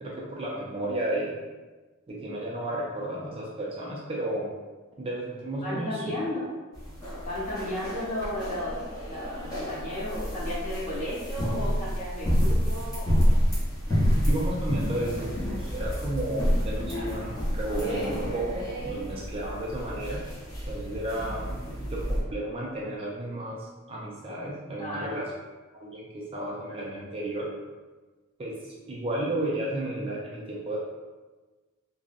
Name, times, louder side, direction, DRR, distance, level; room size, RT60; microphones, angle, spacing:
voice 1, 0.0-1.3 2.1-4.5 5.0-6.1 14.3-20.2 20.6-25.3 25.8-27.5 28.4-28.5 28.9-30.8, right 1 dB, 25° right, -4 dB, 0.4 m, -33 dB
voice 2, 5.6-6.5 7.2-8.8 9.0-13.3 24.8-25.2, left 1 dB, 35° left, -9 dB, 1.1 m, -34 dB
sound 1, 6.7-22.2, equal, 15° left, 0.9 m, -29 dB
3.6 x 2.0 x 2.5 m, 1.3 s
head